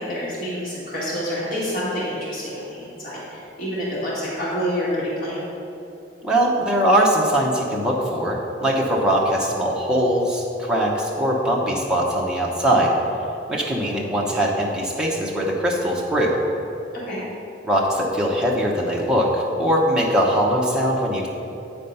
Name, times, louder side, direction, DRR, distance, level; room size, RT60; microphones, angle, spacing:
voice 1, 0.0-5.5 17.0-17.2, equal, 45° left, -8 dB, 2.0 m, -28 dB
voice 2, 6.2-12.9 13.5-16.4 17.6-21.3, equal, 5° right, -4 dB, 0.8 m, -21 dB
9.1 x 4.4 x 5.5 m, 2.9 s
head